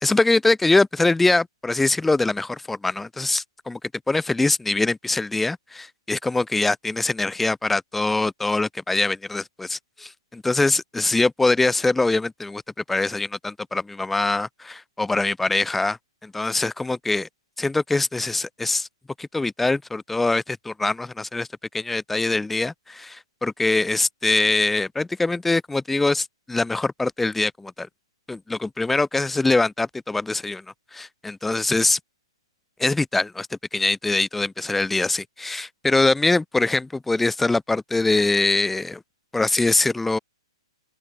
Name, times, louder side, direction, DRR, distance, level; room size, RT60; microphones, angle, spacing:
voice 1, 0.0-3.8 4.1-12.6 12.9-17.3 17.6-18.9 19.2-21.5 21.7-27.9 28.3-30.6 30.9-32.0 32.8-39.0 39.3-40.2, left 2 dB, 5° left, 0.5 m, -23 dB
open air
hypercardioid pair, 130°, 3 cm